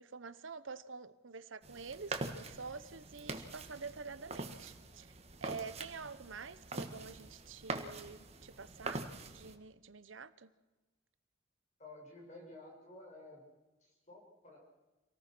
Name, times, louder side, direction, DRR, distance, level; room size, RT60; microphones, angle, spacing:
voice 1, 0.0-9.0 9.3-10.5, right 5 dB, 85° right, 14 dB, 0.9 m, -47 dB
sound 1, 1.6-9.6, right 2 dB, 35° right, 1.6 m, -44 dB
voice 2, 11.8-13.5 13.8-14.6, left 2 dB, 35° left, 0 dB, 6.6 m, -53 dB
27.5 x 18.5 x 6.1 m, 1.1 s
head